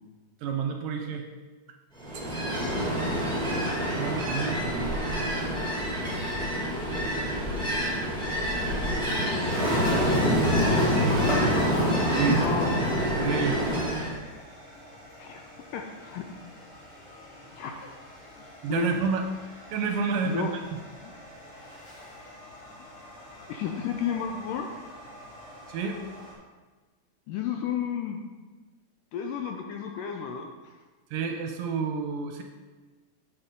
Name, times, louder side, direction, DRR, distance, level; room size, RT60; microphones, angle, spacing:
voice 1, 0.4-1.3 2.1-2.4 3.9-5.3 10.2-10.4 12.1-12.5 13.2-13.6 18.6-19.3 19.5-20.8 25.7-26.0 31.1-32.4, right 5 dB, 80° right, 5 dB, 2.1 m, -30 dB
Ocean, 2.0-14.2, equal, 5° left, 0.7 m, -26 dB
voice 2, 2.5-2.9 10.5-10.9 12.3-12.7 15.2-15.4 15.7-16.2 17.5-17.9 18.7-18.9 20.2-20.5 21.0-21.1 23.5-24.7 27.3-28.2 29.1-30.7, left 8 dB, 75° left, 3 dB, 2.0 m, -32 dB
sound 1, 9.5-26.3, left 1 dB, 55° left, 4.9 m, -40 dB
9.2 x 8.4 x 3.7 m, 1.3 s
omnidirectional pair, 4.3 m